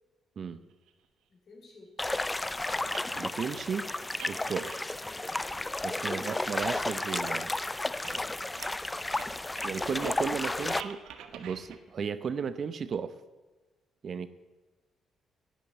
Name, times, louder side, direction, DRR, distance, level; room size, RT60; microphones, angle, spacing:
sound 1, 0.9-1.0 2.3-2.4 2.9-3.4 3.6-5.1 5.4-6.0 6.3-6.4 6.8-6.9 7.1-7.7 7.9-8.3 8.6-11.8, right 8 dB, 90° right, 1.1 m, -47 dB
voice 1, 1.3-2.3 4.9-5.3 9.7-10.7, left 3 dB, 55° left, 0 dB, 4.1 m, -53 dB
sound 2, 2.0-10.8, left 2 dB, 15° left, 0.4 m, -32 dB
voice 2, 3.1-3.9 4.3-4.8 5.8-7.5 9.6-11.0 11.3-13.1 14.0-14.3, right 6 dB, 50° right, 13 dB, 0.6 m, -34 dB
11.0 x 9.0 x 8.2 m, 1.3 s
cardioid pair, 90°, 0 cm